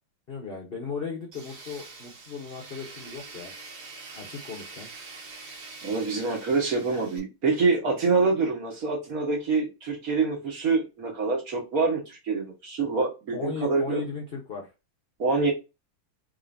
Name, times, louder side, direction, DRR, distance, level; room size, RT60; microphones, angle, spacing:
voice 1, 0.3-3.5 4.1-4.9 13.3-14.7, left 5 dB, 60° left, -1 dB, 0.6 m, -36 dB
Tools, 1.3-7.2, right 3 dB, 80° right, 2.1 m, -44 dB
voice 2, 5.8-14.0 15.2-15.5, right 4 dB, 50° right, -1 dB, 1.5 m, -26 dB
3.8 x 3.7 x 2.5 m, 0.27 s
omnidirectional pair, 2.3 m